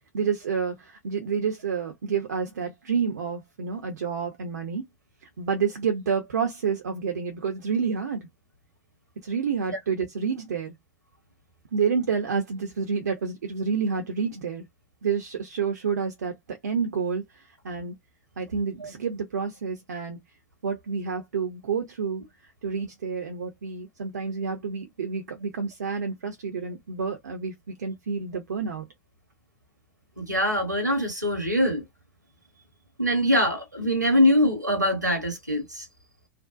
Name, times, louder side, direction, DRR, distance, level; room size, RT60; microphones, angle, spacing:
voice 1, 0.1-4.8 5.4-8.3 9.2-10.7 11.7-14.6 15.0-18.0 18.4-20.2 20.6-22.2 22.6-28.9, right 6 dB, 70° right, 0.6 m, -29 dB
voice 2, 30.2-31.8 33.0-35.8, left 1 dB, 90° right, 1.0 m, -23 dB
2.5 x 2.1 x 2.4 m
figure-of-eight pair, 90°, 9 cm